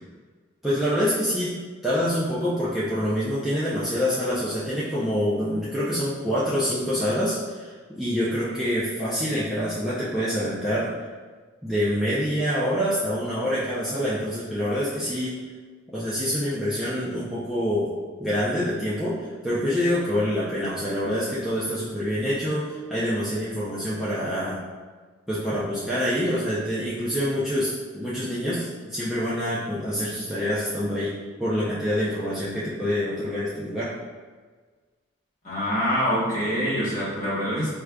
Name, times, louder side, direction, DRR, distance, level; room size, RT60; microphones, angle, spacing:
voice 1, 0.6-1.5 1.8-10.9 11.6-15.4 15.9-17.9 18.2-24.6 25.3-31.1 31.4-33.9, equal, ahead, -11 dB, 0.4 m, -26 dB
voice 2, 35.4-37.7, equal, 35° left, -8 dB, 1.1 m, -25 dB
4.7 x 2.4 x 2.2 m, 1.4 s
head